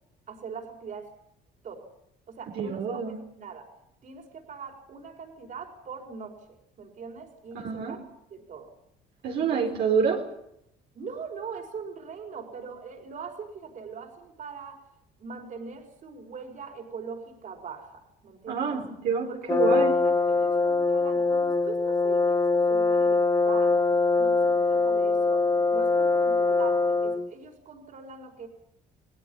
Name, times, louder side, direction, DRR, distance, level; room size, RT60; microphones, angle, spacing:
voice 1, 0.3-1.1 1.6-1.9 2.3-3.7 4.0-6.4 6.8-8.0 8.3-8.7 9.4-9.7 10.9-14.9 15.2-18.8 19.3-23.8 24.2-25.4 25.7-28.5, right 5 dB, 50° right, 3 dB, 5.0 m, -42 dB
voice 2, 2.6-3.2 7.5-8.0 9.2-10.2 18.5-19.9, right 6 dB, 75° right, 0 dB, 4.3 m, -27 dB
Brass instrument, 19.5-27.3, left 3 dB, 20° left, 1.8 m, -23 dB
29.5 x 19.5 x 5.6 m, 0.79 s
cardioid pair, 110°, 17 cm